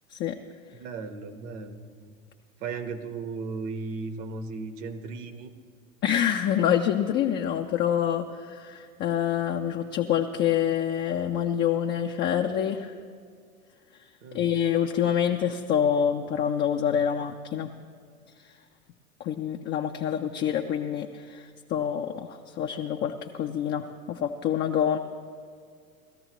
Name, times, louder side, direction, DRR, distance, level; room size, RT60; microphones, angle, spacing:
voice 1, 0.7-2.1 2.6-5.5 14.2-14.5, right 4 dB, 60° right, 8 dB, 1.3 m, -36 dB
voice 2, 6.0-12.9 14.3-17.7 19.2-25.0, left 9 dB, 25° left, 3 dB, 0.5 m, -26 dB
18.5 x 13.5 x 3.0 m, 2.1 s
hypercardioid pair, 105°, 42 cm